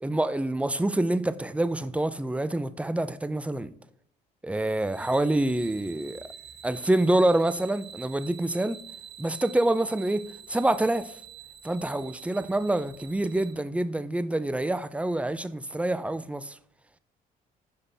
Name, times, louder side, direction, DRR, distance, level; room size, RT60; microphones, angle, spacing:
voice 1, 0.0-3.7 4.4-6.2 6.6-8.8 9.2-10.2 10.5-11.1 11.6-16.6, right 1 dB, 5° right, 0.5 m, -26 dB
sound 1, 4.8-13.5, right 7 dB, 70° right, 1.9 m, -47 dB
6.0 x 5.3 x 3.4 m
hypercardioid pair, 55°, 20 cm